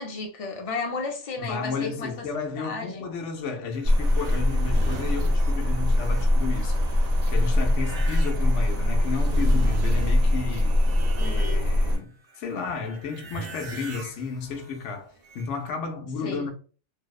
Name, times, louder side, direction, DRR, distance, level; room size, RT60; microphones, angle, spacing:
voice 1, 0.0-2.3 2.6-3.1 16.2-16.5, left 3 dB, 55° left, 0.4 m, -33 dB
voice 2, 1.4-6.8 7.3-10.8 11.2-16.5, left 5 dB, 75° left, 0.9 m, -33 dB
sound 1, 3.7-12.0 12.3-15.6, right 2 dB, 65° right, 0.9 m, -40 dB
sound 2, 3.8-12.0, left 1 dB, 90° right, 0.3 m, -22 dB
sound 3, 13.3-15.2, right 1 dB, 40° right, 0.5 m, -46 dB
2.6 x 2.0 x 2.3 m
omnidirectional pair, 1.3 m